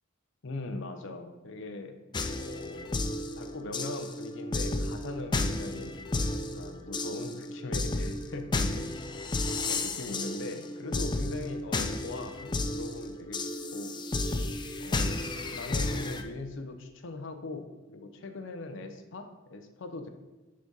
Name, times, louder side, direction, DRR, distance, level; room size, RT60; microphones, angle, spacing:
voice 1, 0.4-2.0 2.4-6.0 6.5-8.9 9.7-13.5 13.7-14.0 14.8-20.1, left 3 dB, 65° left, 6 dB, 0.7 m, -41 dB
sound 1, 2.1-16.2, left 2 dB, 20° left, 0.4 m, -32 dB
6.6 x 3.8 x 5.3 m, 1.2 s
head